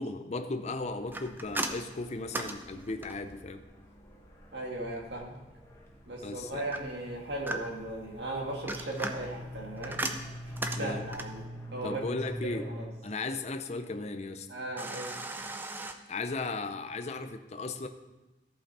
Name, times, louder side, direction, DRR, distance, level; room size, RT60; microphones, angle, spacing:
voice 1, 0.0-3.6 6.2-6.7 10.8-11.0 11.8-12.7 13.0-14.5 16.1-17.9, left 3 dB, 35° left, 7 dB, 0.5 m, -36 dB
sound 1, 0.6-12.9, left 1 dB, 15° left, 1.3 m, -45 dB
sound 2, 1.1-3.4 6.7-8.0 8.5-11.5 14.8-15.9, right 2 dB, 10° right, 0.5 m, -37 dB
voice 2, 4.5-5.4 6.1-11.4 11.7-12.0 12.4-12.9 14.5-15.1, right 2 dB, 65° right, -1 dB, 2.0 m, -37 dB
14.0 x 5.6 x 4.2 m, 1.1 s
head